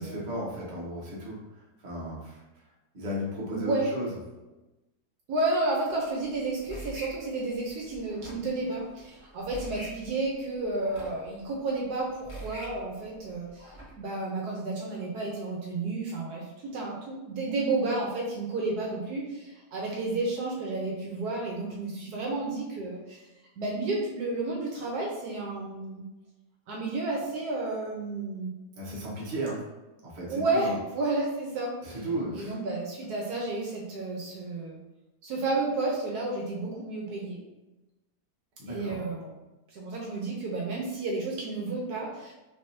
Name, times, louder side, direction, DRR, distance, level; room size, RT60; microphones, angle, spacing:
voice 1, 0.0-1.4 1.8-2.4 2.9-4.1 28.8-29.6 30.0-30.8 31.8-32.6 38.6-39.0, equal, 35° right, -5 dB, 0.9 m, -34 dB
voice 2, 3.5-3.9 5.3-23.2 23.6-26.0 26.7-28.5 30.3-31.8 32.3-34.8 35.2-37.4 38.7-39.3 39.7-42.3, right 2 dB, 70° right, -2 dB, 1.2 m, -31 dB
Swing or seesaw from close, 5.9-13.9, right 1 dB, 20° left, 1.2 m, -46 dB
3.4 x 3.4 x 2.7 m, 1.0 s
omnidirectional pair, 1.9 m